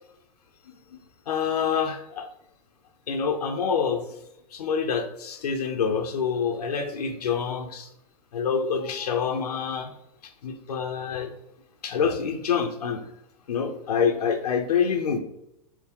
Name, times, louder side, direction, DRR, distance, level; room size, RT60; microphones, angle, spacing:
voice 1, 1.3-2.3 3.1-4.0 4.5-7.9 8.3-9.9 10.4-11.3 11.8-13.0 13.5-15.2, left 6 dB, 85° left, 4 dB, 0.5 m, -26 dB
4.5 x 2.1 x 3.6 m, 0.81 s
hypercardioid pair, 110°, 20 cm